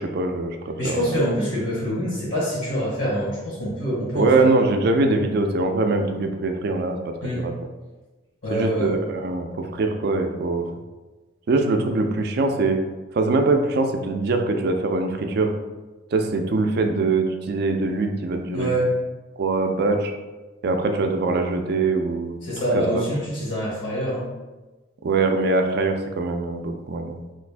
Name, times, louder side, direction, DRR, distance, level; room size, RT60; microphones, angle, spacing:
voice 1, 0.0-1.2 4.1-7.5 8.5-10.6 11.5-12.8 13.1-15.5 16.1-18.7 19.4-20.1 20.6-22.4 22.7-23.0 25.0-27.2, right 3 dB, 55° right, 5 dB, 0.4 m, -23 dB
voice 2, 0.8-4.5 7.2-7.5 8.4-8.9 18.5-18.9 22.4-24.2, equal, 75° left, -6 dB, 1.3 m, -25 dB
3.1 x 2.5 x 3.3 m, 1.2 s
head